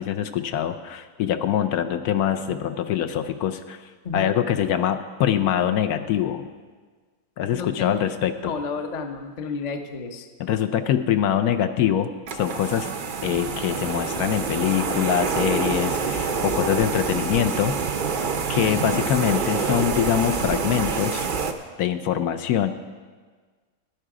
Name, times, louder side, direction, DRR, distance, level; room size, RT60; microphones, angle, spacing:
voice 1, 0.0-3.8 4.1-6.4 7.4-8.5 10.4-12.9 13.2-17.8 18.5-21.3 21.8-22.7, left 10 dB, 75° left, 8 dB, 1.1 m, -24 dB
voice 2, 7.5-7.9 8.4-10.3 18.5-19.0, left 5 dB, 40° left, 6 dB, 0.6 m, -31 dB
sound 1, 12.3-21.5, right 5 dB, 55° right, 0.5 m, -27 dB
12.0 x 10.0 x 4.8 m, 1.5 s
omnidirectional pair, 1.7 m